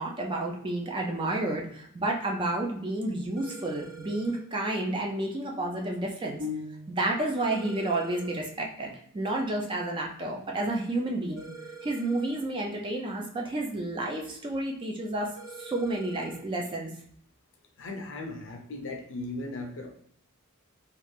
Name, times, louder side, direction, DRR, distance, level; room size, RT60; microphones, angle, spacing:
voice 1, 0.0-6.4 6.9-11.5 11.8-16.9, right 2 dB, 20° right, 0 dB, 0.4 m, -31 dB
sound 1, 3.4-4.4 7.4-8.4 11.4-12.4 15.4-16.4, right 4 dB, 50° right, 1.0 m, -45 dB
sound 2, 6.4-7.4, left 5 dB, 5° left, 0.7 m, -38 dB
voice 2, 17.8-19.9, left 2 dB, 55° left, 2 dB, 0.5 m, -37 dB
3.2 x 2.4 x 3.3 m, 0.64 s
head